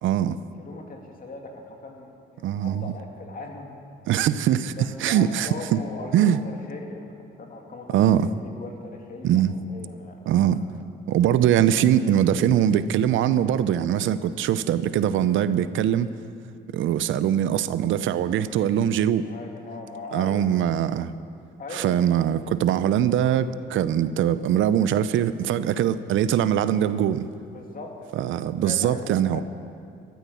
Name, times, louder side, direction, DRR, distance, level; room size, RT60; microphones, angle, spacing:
voice 1, 0.0-0.4 2.4-2.8 4.1-5.8 6.1-6.4 7.9-8.3 9.2-9.5 10.3-10.6 11.1-16.1 16.7-19.3 20.1-21.1 21.7-27.3 28.2-29.4, right 10 dB, 80° right, 14 dB, 0.6 m, -22 dB
voice 2, 0.6-3.7 4.8-7.1 7.4-9.4 9.7-10.2 10.5-10.7 19.2-20.4 21.6-22.0 27.4-29.0 29.3-29.4, left 3 dB, 45° left, 1 dB, 2.6 m, -39 dB
14.0 x 13.5 x 7.0 m, 2.3 s
cardioid pair, 90°, 20 cm